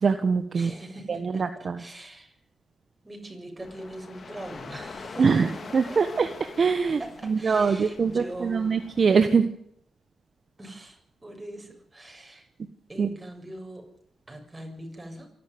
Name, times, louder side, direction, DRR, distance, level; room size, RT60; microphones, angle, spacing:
voice 1, 0.0-0.7 1.1-1.8 5.2-6.3 6.6-7.0 7.3-9.5 13.0-13.1, right 5 dB, 50° right, 8 dB, 1.4 m, -23 dB
voice 2, 0.5-1.5 1.8-2.4 3.0-6.0 6.9-8.8 10.6-12.5 12.9-13.8 14.3-15.3, right 1 dB, 20° right, 3 dB, 7.2 m, -42 dB
sound 1, 3.6-9.2, left 4 dB, 50° left, 2.6 m, -44 dB
27.0 x 12.0 x 9.4 m, 0.72 s
cardioid pair, 65°, 0 cm